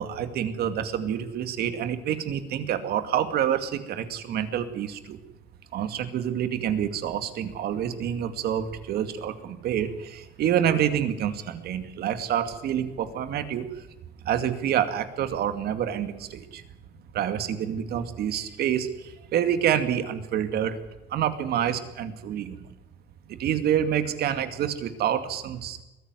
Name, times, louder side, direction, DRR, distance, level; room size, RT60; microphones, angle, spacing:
voice 1, 0.0-5.2 5.7-13.9 14.2-16.6 17.1-20.8 21.1-22.6 23.3-25.8, right 9 dB, 70° right, 9 dB, 2.3 m, -27 dB
22.0 x 15.5 x 9.7 m, 0.99 s
cardioid pair, 110°, 17 cm